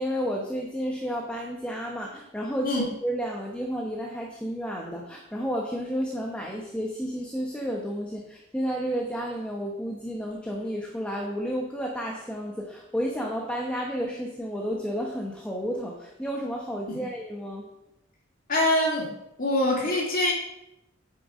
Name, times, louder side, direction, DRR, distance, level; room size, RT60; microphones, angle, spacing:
voice 1, 0.0-17.7, equal, 5° left, -1 dB, 1.1 m, -31 dB
voice 2, 18.5-19.1 19.4-20.3, left 1 dB, 45° left, -2 dB, 2.7 m, -24 dB
9.5 x 6.6 x 5.1 m, 0.87 s
head